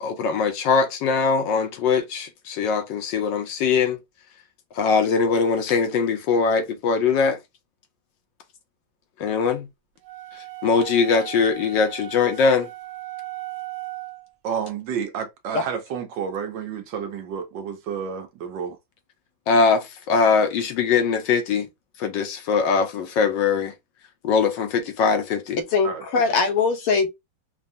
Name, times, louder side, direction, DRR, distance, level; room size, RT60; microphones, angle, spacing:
voice 1, 0.0-4.0 4.7-7.4 9.2-9.7 10.6-12.7 19.5-21.7 22.0-23.7 24.2-25.6, left 5 dB, 70° left, 1.2 m, -21 dB
sound 1, 10.0-14.3, right 19 dB, 90° right, 0.6 m, -37 dB
voice 2, 14.4-18.8 25.8-26.3, right 7 dB, 70° right, 1.3 m, -30 dB
voice 3, 25.6-27.1, left 4 dB, 85° left, 1.7 m, -21 dB
5.3 x 2.3 x 2.6 m
omnidirectional pair, 2.3 m